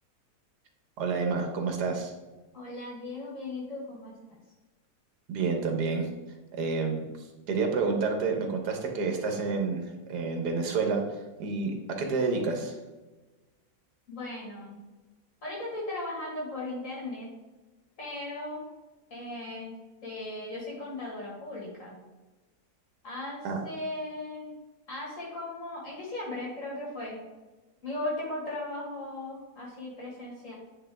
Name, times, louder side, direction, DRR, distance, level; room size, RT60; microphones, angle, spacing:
voice 1, 1.0-2.1 5.3-6.1 6.5-7.0 7.5-11.0 11.4-12.7 23.4-23.6, right 4 dB, 80° right, 3 dB, 1.6 m, -29 dB
voice 2, 2.5-4.4 14.1-14.8 15.4-17.3 18.0-18.6 19.1-19.7 20.0-22.0 23.0-24.6 24.9-27.2 27.8-30.5, left 2 dB, 55° left, -4 dB, 2.0 m, -37 dB
9.3 x 3.8 x 3.4 m, 1.2 s
omnidirectional pair, 1.7 m